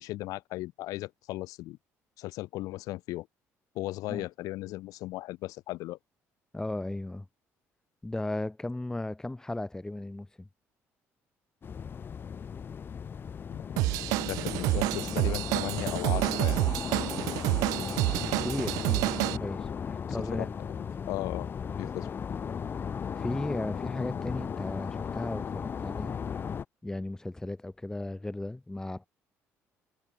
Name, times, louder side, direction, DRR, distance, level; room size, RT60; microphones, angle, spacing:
voice 1, 0.0-1.8 2.2-3.3 3.7-6.0 13.5-13.6 14.0-16.6 20.3-21.5 21.8-22.1, left 18 dB, 80° left, 5.7 m, -36 dB
voice 2, 6.5-7.3 8.0-10.5 17.8-20.5 23.2-26.2 26.8-29.1, left 2 dB, 10° left, 2.7 m, -36 dB
sound 1, 11.6-26.6, left 7 dB, 40° left, 0.8 m, -36 dB
Drum kit / Drum, 13.8-19.4, right 22 dB, 90° right, 1.7 m, -28 dB
cardioid pair, 100°, 6 cm